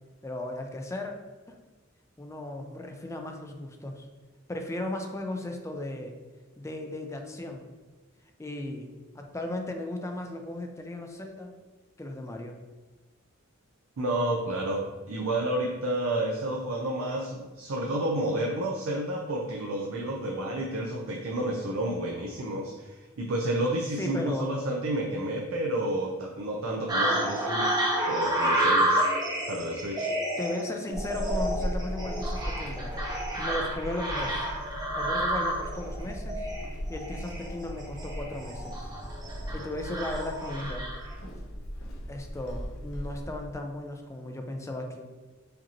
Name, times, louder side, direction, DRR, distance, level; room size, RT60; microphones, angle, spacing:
voice 1, 0.2-1.1 1.5-1.6 2.2-4.1 4.5-6.1 6.6-7.6 8.4-8.9 9.1-11.5 12.0-12.6 24.0-24.5 30.4-32.9 33.4-34.5 34.9-36.5 36.9-38.9 39.5-40.9 42.1-45.0, left 1 dB, 15° left, 4 dB, 0.4 m, -36 dB
voice 2, 14.0-27.7 28.0-29.0 29.5-30.1, right 1 dB, 75° right, 0 dB, 0.5 m, -30 dB
sound 1, 26.9-41.1, right 1 dB, 20° right, 0.7 m, -30 dB
Walk footsteps / Squeak, 30.9-43.6, equal, 80° left, 0.7 m, -37 dB
5.0 x 2.8 x 2.8 m, 1.3 s
head